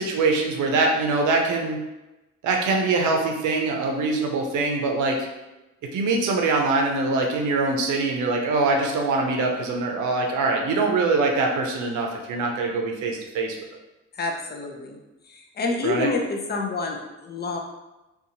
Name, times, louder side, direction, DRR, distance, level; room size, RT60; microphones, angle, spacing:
voice 1, 0.0-1.8 2.4-5.3 5.9-13.6 15.8-16.1, right 3 dB, 75° right, 2 dB, 0.6 m, -23 dB
voice 2, 14.1-15.0 15.2-17.6, left 3 dB, 35° left, 2 dB, 0.5 m, -28 dB
2.7 x 2.3 x 2.6 m, 1.0 s
cardioid pair, 90°, 30 cm